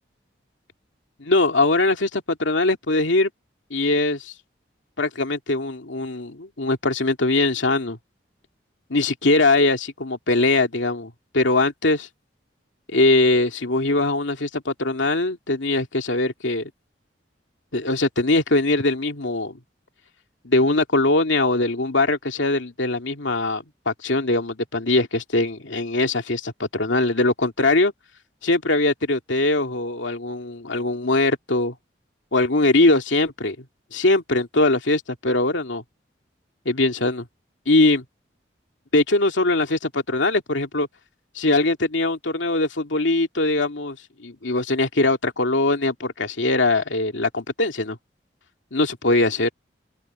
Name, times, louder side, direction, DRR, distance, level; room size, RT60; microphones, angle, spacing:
voice 1, 1.2-3.3 3.7-4.3 5.0-8.0 8.9-12.1 12.9-16.7 17.7-19.6 20.4-27.9 28.4-31.7 32.3-33.6 33.9-35.8 36.7-37.2 37.7-38.0 38.9-40.9 41.4-48.0 48.7-49.5, left 2 dB, 85° left, 2.4 m, -21 dB
open air
head